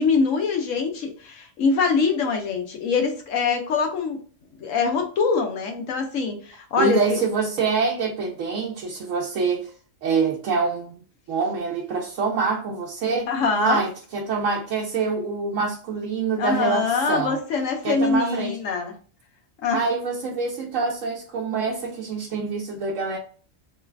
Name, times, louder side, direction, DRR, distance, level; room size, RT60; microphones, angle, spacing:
voice 1, 0.0-4.2 4.6-7.0 13.3-13.8 16.4-18.9 19.6-19.8, left 5 dB, 80° left, 1.1 m, -23 dB
voice 2, 6.8-9.7 10.0-11.0 11.3-13.3 13.5-17.4 17.8-18.6 19.7-23.2, right 4 dB, 80° right, 1.0 m, -25 dB
3.1 x 2.3 x 3.3 m
omnidirectional pair, 1.3 m